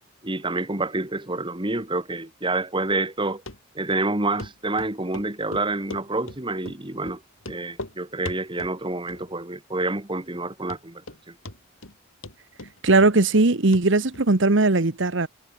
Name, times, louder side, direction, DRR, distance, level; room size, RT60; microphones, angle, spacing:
voice 1, 0.2-3.4 3.7-7.2 7.5-11.4, right 2 dB, 25° right, 2.3 m, -28 dB
Run, 3.5-3.6 3.9-4.0 4.4-4.5 4.8-6.4 6.6-6.8 7.0-7.2 7.4-7.9 8.2-8.7 9.1-9.5 9.8-9.9 10.3-10.4 10.7-11.2 11.4-11.9 12.2-13.5 13.7-13.8 14.1-14.2, left 2 dB, 85° left, 6.9 m, -38 dB
voice 2, 12.8-15.3, right 2 dB, 65° right, 1.2 m, -19 dB
head